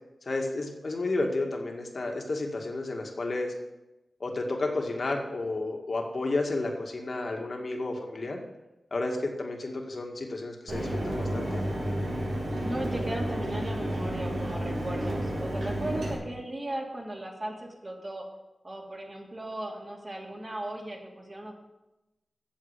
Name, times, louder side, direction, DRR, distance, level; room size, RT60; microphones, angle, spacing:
voice 1, 0.3-3.5 4.2-8.4 8.9-11.6, left 2 dB, 60° left, 2 dB, 2.0 m, -31 dB
Mechanisms, 10.7-16.1, right 1 dB, 90° right, 3.1 m, -31 dB
voice 2, 12.6-18.2 18.6-21.5, right 1 dB, 40° right, -2 dB, 2.8 m, -37 dB
8.7 x 7.3 x 8.3 m, 0.99 s
wide cardioid pair, 65°, 0 cm